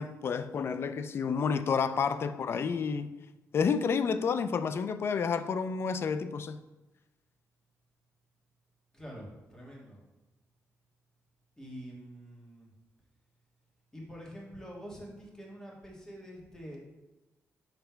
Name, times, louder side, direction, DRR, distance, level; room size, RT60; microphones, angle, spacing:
voice 1, 0.0-3.1 3.5-6.6, left 6 dB, 45° left, 11 dB, 0.4 m, -30 dB
voice 2, 8.9-10.0 11.6-12.7 13.9-16.8, equal, 10° left, -3 dB, 1.7 m, -46 dB
5.7 x 3.3 x 5.8 m, 1.0 s
cardioid pair, 130°, 5 cm